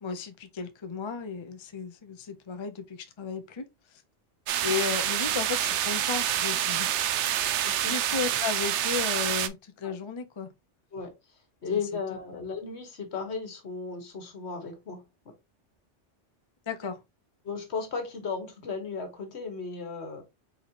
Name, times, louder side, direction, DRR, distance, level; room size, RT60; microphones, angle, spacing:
voice 1, 0.0-3.6 3.9-4.0 4.6-7.1 7.4-7.5 7.8-10.5 11.7-11.8 12.1-12.2 16.7-17.0, left 6 dB, 35° left, 0.5 m, -34 dB
sound 1, 4.5-9.5, right 11 dB, 75° right, 0.9 m, -27 dB
voice 2, 11.6-15.3 17.4-20.2, left 5 dB, 65° left, 1.5 m, -35 dB
4.2 x 4.1 x 2.8 m
omnidirectional pair, 1.2 m